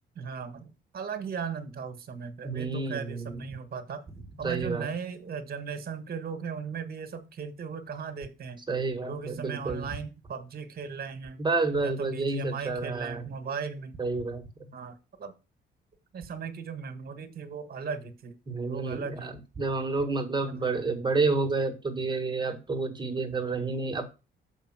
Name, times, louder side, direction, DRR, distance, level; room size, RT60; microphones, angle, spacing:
voice 1, 0.1-4.0 4.4-8.6 9.0-11.4 11.8-14.0 14.7-15.3 16.1-18.3 18.7-19.3 20.4-20.8, right 6 dB, 50° right, 10 dB, 1.7 m, -37 dB
voice 2, 2.4-3.4 4.4-4.9 8.7-9.9 11.4-13.2 14.0-14.4 18.5-24.0, right 3 dB, 20° right, 6 dB, 1.7 m, -29 dB
6.8 x 5.1 x 6.1 m, 0.29 s
cardioid pair, 90°, 20 cm